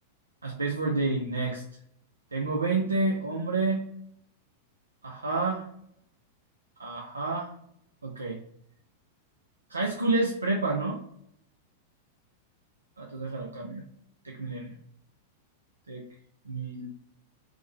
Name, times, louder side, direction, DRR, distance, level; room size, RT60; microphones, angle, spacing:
voice 1, 0.4-1.6 2.3-3.8 5.0-5.6 6.8-7.5 8.0-8.4 9.7-11.0 13.0-13.8 14.2-14.7 15.9-16.0 16.5-16.9, right 3 dB, 85° right, -1 dB, 0.4 m, -29 dB
3.1 x 2.1 x 3.4 m, 0.72 s
figure-of-eight pair, 95°, 0 cm